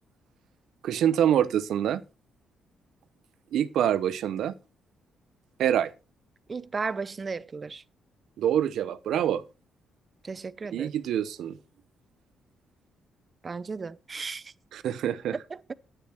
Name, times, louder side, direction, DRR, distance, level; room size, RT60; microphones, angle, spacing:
voice 1, 0.8-2.0 3.5-4.5 5.6-5.9 8.4-9.4 10.7-11.6 14.7-15.4, right 10 dB, 75° right, 0.8 m, -25 dB
voice 2, 6.5-7.8 10.2-10.9 13.4-14.5 15.7-15.8, right 4 dB, 35° right, 0.6 m, -34 dB
9.6 x 9.1 x 4.4 m
cardioid pair, 90°, 0 cm